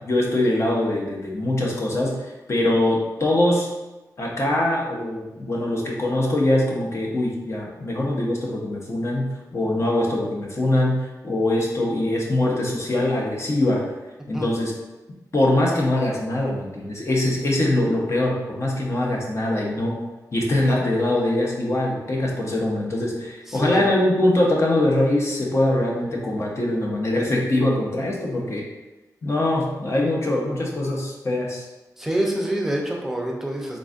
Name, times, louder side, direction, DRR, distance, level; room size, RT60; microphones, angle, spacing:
voice 1, 0.0-2.1 2.5-3.7 4.2-11.0 11.2-13.8 14.3-14.7 15.3-20.0 20.3-28.6 29.2-31.6, left 1 dB, 45° left, -2 dB, 0.8 m, -22 dB
voice 2, 23.5-23.9 32.0-33.8, right 1 dB, 5° right, -1 dB, 0.6 m, -26 dB
3.8 x 3.6 x 2.5 m, 1.1 s
wide cardioid pair, 110°, 7 cm